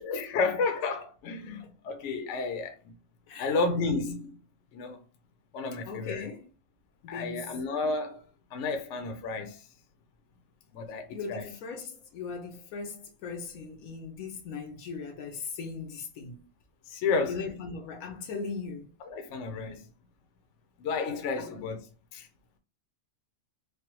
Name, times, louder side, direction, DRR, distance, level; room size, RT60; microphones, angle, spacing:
voice 1, 0.0-2.7 3.4-4.4 4.7-5.0 5.5-6.3 7.1-8.2 8.5-9.6 10.7-11.5 16.9-17.4 19.1-19.8 20.8-21.8 22.1-22.3, left 4 dB, 65° left, 0.9 m, -31 dB
voice 2, 5.8-6.5 7.0-7.6 11.1-16.4 17.3-18.9 21.4-21.6, left 5 dB, 85° left, 1.2 m, -39 dB
3.3 x 2.2 x 2.9 m
omnidirectional pair, 1.4 m